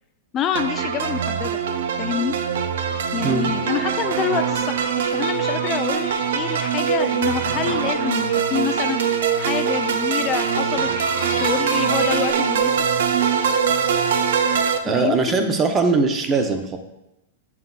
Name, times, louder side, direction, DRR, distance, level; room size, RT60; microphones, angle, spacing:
voice 1, 0.3-1.6 2.0-2.4 3.1-6.1 6.3-10.9 11.4-12.9 14.8-15.6, left 8 dB, 30° left, 9 dB, 0.3 m, -27 dB
sound 1, 0.5-14.8, right 7 dB, 75° right, 0.5 m, -22 dB
sound 2, 2.2-12.3, left 5 dB, 80° left, 1.2 m, -38 dB
voice 2, 14.8-16.8, right 4 dB, 25° right, 6 dB, 0.7 m, -20 dB
7.6 x 5.9 x 2.4 m, 0.91 s
hypercardioid pair, 135°, 0 cm